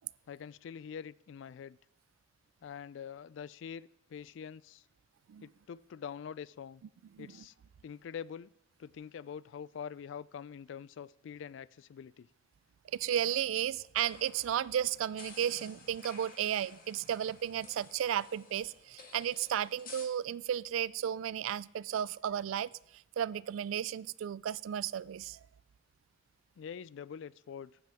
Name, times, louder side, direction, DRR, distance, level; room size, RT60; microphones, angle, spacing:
voice 1, 0.3-1.8 2.6-4.8 5.4-6.8 7.2-7.5 7.8-8.5 8.8-12.3 26.6-27.8, left 7 dB, 65° left, 21 dB, 0.3 m, -45 dB
voice 2, 7.1-7.4 12.9-22.7 23.2-25.4, right 9 dB, 85° right, 21 dB, 0.3 m, -34 dB
sound 1, 14.0-20.1, left 4 dB, 45° left, 1.6 m, -54 dB
15.0 x 10.5 x 3.5 m, 0.79 s
head